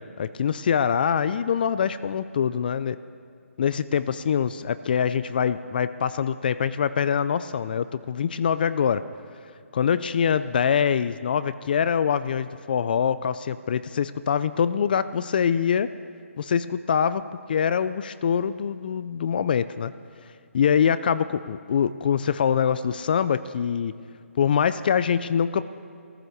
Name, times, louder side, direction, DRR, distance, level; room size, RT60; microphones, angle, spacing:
voice 1, 0.2-3.0 3.6-9.0 9.7-15.9 16.4-17.2 17.5-19.9 20.5-23.9 24.4-25.7, left 7 dB, 40° left, 14 dB, 0.4 m, -24 dB
15.5 x 14.0 x 6.5 m, 2.4 s
hypercardioid pair, 165°, 8 cm